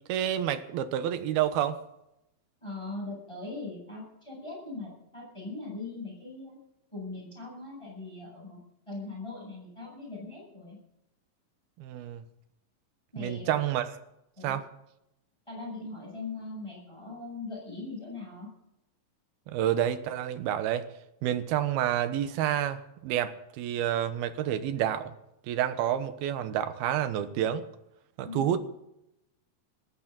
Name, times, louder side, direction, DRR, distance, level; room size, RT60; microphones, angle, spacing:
voice 1, 0.1-1.8 11.8-12.3 13.2-13.9 14.4-14.6 19.5-20.9 21.2-25.1 25.5-27.7 28.2-28.6, right 10 dB, 85° right, 10 dB, 3.0 m, -29 dB
voice 2, 2.6-6.6 6.9-8.6 8.9-10.8 13.1-13.6 14.4-14.6 15.5-18.5 28.2-28.6, left 3 dB, 5° left, -2 dB, 7.8 m, -40 dB
20.0 x 16.0 x 4.1 m, 0.84 s
omnidirectional pair, 4.4 m